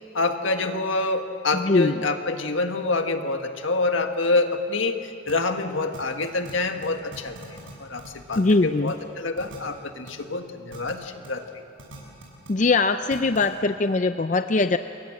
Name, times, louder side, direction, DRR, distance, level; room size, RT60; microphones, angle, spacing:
voice 1, 0.1-11.6, left 3 dB, 75° left, 6 dB, 1.7 m, -27 dB
voice 2, 1.5-2.0 8.4-8.9 12.5-14.8, left 3 dB, 40° left, 9 dB, 0.5 m, -21 dB
sound 1, 5.3-5.4 5.9-6.5 6.8-6.9 7.1-7.7 8.0-8.5 8.9-9.0 9.4-9.6 10.1-10.2 10.7-10.9 11.2-11.3 11.8-12.5 13.1-13.4, right 1 dB, 85° right, 7.3 m, -41 dB
28.5 x 22.0 x 7.8 m, 2.6 s
head